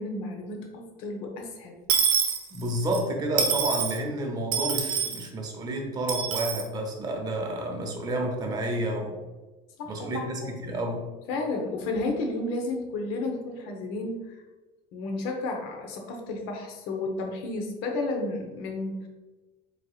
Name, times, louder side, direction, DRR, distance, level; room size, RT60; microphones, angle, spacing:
voice 1, 0.0-1.8 9.8-10.5 11.3-14.2 14.9-19.1, left 2 dB, 65° left, 2 dB, 1.0 m, -32 dB
Dishes pots and pans / Coin (dropping), 1.9-3.0 3.4-4.0 4.5-5.2 6.1-6.6, right 7 dB, 90° right, 0.8 m, -26 dB
voice 2, 2.5-9.2 9.9-11.0, right 1 dB, 20° right, 2 dB, 0.7 m, -30 dB
4.6 x 4.1 x 2.4 m, 1.2 s
cardioid pair, 165°, 18 cm